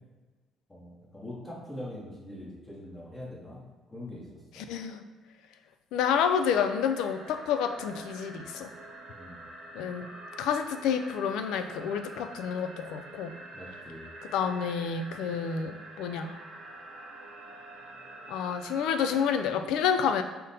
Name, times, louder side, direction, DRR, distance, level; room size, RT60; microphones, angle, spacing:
voice 1, 0.7-4.7 9.1-9.4 13.5-14.1, left 1 dB, 15° left, -6 dB, 1.1 m, -43 dB
voice 2, 4.7-5.0 5.9-8.7 9.7-10.1 10.4-13.3 14.3-16.4 18.3-20.2, left 7 dB, 85° left, 8 dB, 0.3 m, -29 dB
sound 1, 6.5-19.5, right 2 dB, 55° right, 0.9 m, -46 dB
5.1 x 2.1 x 4.1 m, 1.3 s
cardioid pair, 125°, 0 cm